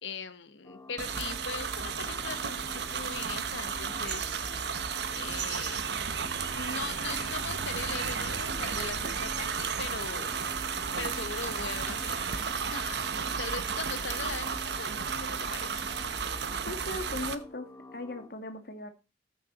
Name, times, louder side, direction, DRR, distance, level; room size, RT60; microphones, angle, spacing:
voice 1, 0.0-2.6 2.9-4.5 5.1-6.0 6.5-10.3 11.0-12.4 12.7-13.1 13.4-15.9, left 5 dB, 85° left, 12 dB, 1.1 m, -40 dB
sound 1, 0.6-18.3, left 2 dB, 15° left, 1.4 m, -49 dB
sound 2, 1.0-17.3, right 6 dB, 65° right, 1.0 m, -33 dB
voice 2, 16.6-18.9, left 2 dB, 55° left, 8 dB, 1.5 m, -38 dB
14.0 x 6.6 x 4.1 m, 0.29 s
head